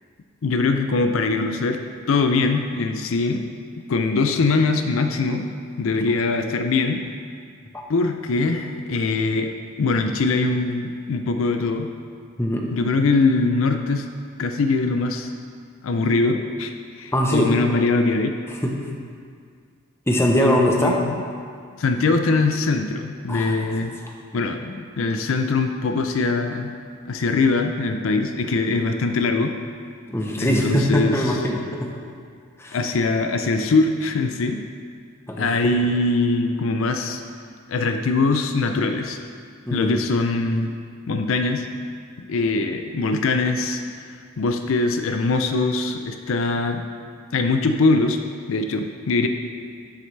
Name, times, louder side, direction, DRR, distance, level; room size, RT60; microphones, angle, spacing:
voice 1, 0.4-1.8 2.1-3.4 3.9-5.4 5.8-7.0 7.9-11.9 12.7-14.1 14.4-15.3 15.8-18.3 20.3-20.6 20.8-21.2 21.8-24.0 24.3-26.7 27.1-29.5 30.4-31.3 32.7-34.6 35.4-37.2 37.7-39.2 39.7-40.7 41.1-41.7 42.3-43.8 44.4-46.9 47.3-48.2 48.5-49.3, left 3 dB, 70° left, 6 dB, 0.5 m, -22 dB
voice 2, 12.4-12.7 17.1-17.5 18.5-18.7 20.1-21.0 23.3-23.7 30.1-31.9 32.6-32.8 35.3-35.7 39.7-40.0, left 1 dB, 10° left, -1 dB, 0.8 m, -22 dB
11.0 x 6.6 x 3.3 m, 2.1 s
head